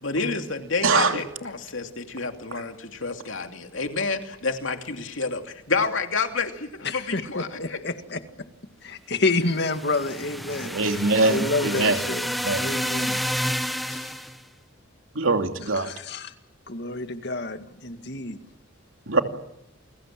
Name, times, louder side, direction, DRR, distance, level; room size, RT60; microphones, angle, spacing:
voice 1, 0.0-7.8, left 4 dB, 70° left, 2.7 m, -29 dB
voice 2, 6.8-8.2 8.8-13.2 13.9-14.2 15.7-16.3 16.7-18.4, left 3 dB, 55° left, 2.0 m, -29 dB
sound 1, 9.5-14.4, equal, ahead, 0.9 m, -30 dB
voice 3, 10.6-12.0 12.4-12.6 15.2-15.9 19.1-19.2, right 3 dB, 80° right, 2.7 m, -22 dB
29.5 x 22.5 x 7.6 m
head